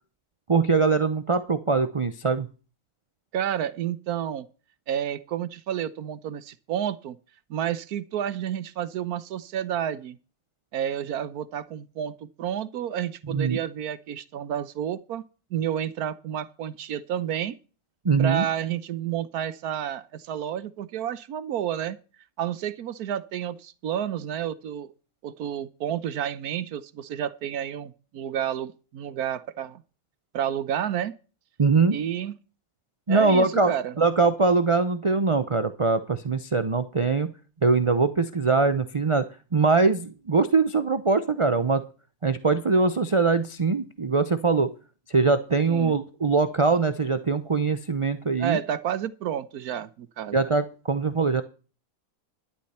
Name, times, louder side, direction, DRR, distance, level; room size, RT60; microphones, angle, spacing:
voice 1, 0.5-2.5 13.3-13.6 18.0-18.5 31.6-32.0 33.1-33.7 34.0-37.3 37.6-39.3 39.5-41.8 42.2-44.7 45.1-48.6 50.3-51.4, right 4 dB, 40° right, 0.4 m, -22 dB
voice 2, 3.3-4.5 4.9-7.2 7.5-10.2 10.7-15.2 15.5-17.6 18.2-22.0 22.4-24.9 25.2-29.8 30.3-31.1 31.9-32.3 33.1-33.9 45.7-46.0 48.4-50.4, right 10 dB, 90° right, 1.3 m, -30 dB
11.5 x 11.5 x 4.3 m
omnidirectional pair, 1.6 m